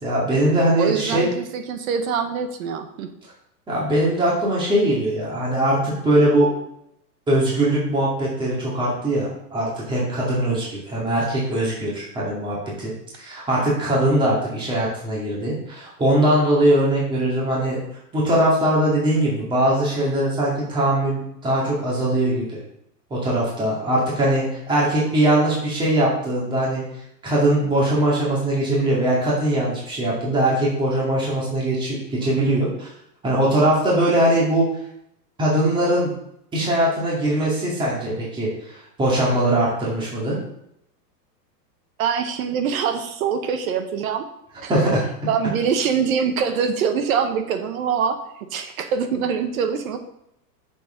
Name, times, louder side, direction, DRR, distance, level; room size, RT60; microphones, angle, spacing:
voice 1, 0.0-1.3 3.7-6.5 7.3-17.8 18.1-22.5 23.1-26.8 27.2-32.9 33.2-34.7 35.4-36.1 36.5-40.4 44.7-45.0, right 1 dB, 10° right, -6 dB, 2.2 m, -21 dB
voice 2, 0.8-3.1 42.0-44.3 44.6-44.8 45.3-50.0, right 7 dB, 55° right, 8 dB, 1.1 m, -24 dB
8.0 x 6.9 x 3.8 m, 0.76 s
supercardioid pair, 155°, 49 cm